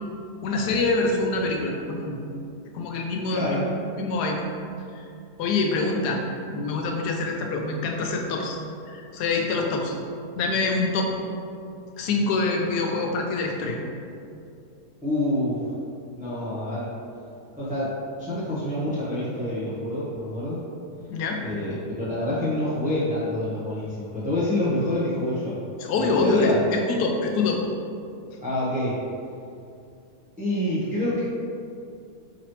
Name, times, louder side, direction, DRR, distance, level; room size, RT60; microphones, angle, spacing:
voice 1, 0.4-2.2 2.7-3.6 3.9-4.4 4.9-5.0 5.4-6.2 6.5-8.6 8.9-9.9 10.4-11.1 12.0-13.8 21.1-21.4 25.8-27.6, left 3 dB, 90° left, 1 dB, 1.2 m, -25 dB
voice 2, 3.3-3.6 15.0-15.7 16.2-16.9 17.6-17.9 18.2-20.6 21.4-25.5 26.0-26.6 28.4-29.0 30.4-31.2, left 1 dB, 10° right, -11 dB, 0.4 m, -27 dB
4.8 x 2.9 x 3.0 m, 2.5 s
omnidirectional pair, 1.7 m